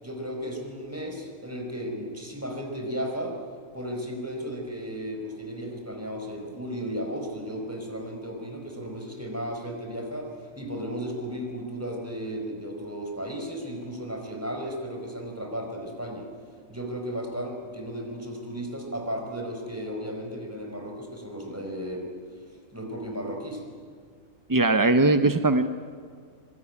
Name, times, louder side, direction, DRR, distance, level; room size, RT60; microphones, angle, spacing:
voice 1, 0.0-3.4 3.7-16.3 16.7-22.1 22.7-23.6, equal, 10° right, 2 dB, 4.7 m, -34 dB
voice 2, 24.5-25.7, right 2 dB, 30° right, 9 dB, 0.3 m, -20 dB
25.0 x 22.0 x 9.8 m, 2.1 s
omnidirectional pair, 1.6 m